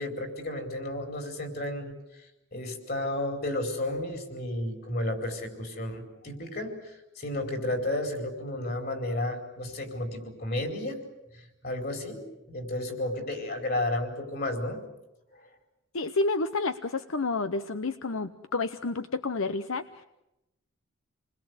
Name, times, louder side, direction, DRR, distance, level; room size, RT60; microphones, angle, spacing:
voice 1, 0.0-1.9 2.5-11.0 11.3-12.2 12.5-14.8, left 1 dB, 45° left, 5 dB, 4.6 m, -32 dB
voice 2, 15.9-20.0, left 3 dB, 75° left, 11 dB, 0.8 m, -30 dB
28.0 x 21.0 x 8.1 m, 0.91 s
head